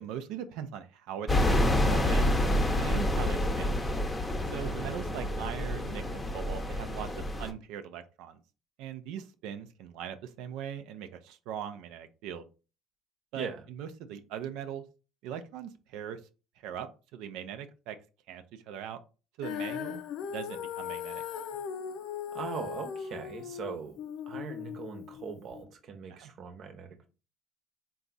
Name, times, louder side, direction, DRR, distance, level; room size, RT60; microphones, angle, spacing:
voice 1, 0.0-2.4 2.8-3.8 4.5-8.4 8.8-12.5 13.3-14.8 15.2-16.2 16.6-18.0 18.3-19.0 19.4-20.0 20.3-21.2 26.1-26.3, right 9 dB, 75° right, 0.4 m, -40 dB
sound 1, 1.3-7.5, left 1 dB, 15° left, 0.7 m, -28 dB
Female singing, 19.4-25.6, left 8 dB, 70° left, 0.4 m, -38 dB
voice 2, 22.3-24.0 24.3-27.1, right 6 dB, 60° right, 0.9 m, -40 dB
3.9 x 2.3 x 3.9 m
supercardioid pair, 80°, 0 cm